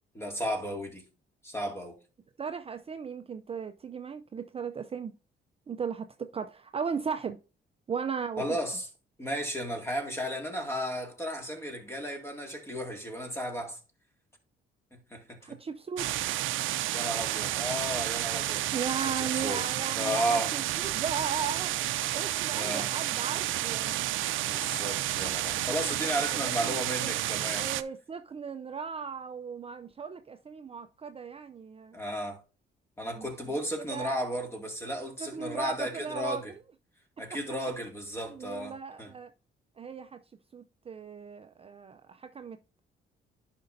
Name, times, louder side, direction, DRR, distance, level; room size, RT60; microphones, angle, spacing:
voice 1, 0.1-1.0 1.4-2.0 8.4-8.9 9.2-13.8 14.9-15.6 16.9-18.7 19.0-19.6 20.0-20.6 22.5-22.9 24.4-27.7 31.9-32.4 33.0-36.5 37.2-39.1, equal, 15° left, 2.2 m, -34 dB
voice 2, 2.4-5.1 5.7-7.4 7.9-8.4 15.4-16.4 18.7-21.8 22.1-24.1 25.8-25.9 26.6-26.8 27.0-27.1 27.6-32.0 33.2-33.3 33.9-34.2 35.2-36.4 38.3-39.3 39.8-40.2 40.5-42.8, right 6 dB, 30° right, 0.5 m, -37 dB
sound 1, 16.0-27.8, right 14 dB, 80° right, 0.5 m, -31 dB
11.0 x 5.2 x 2.6 m
cardioid pair, 90°, 20 cm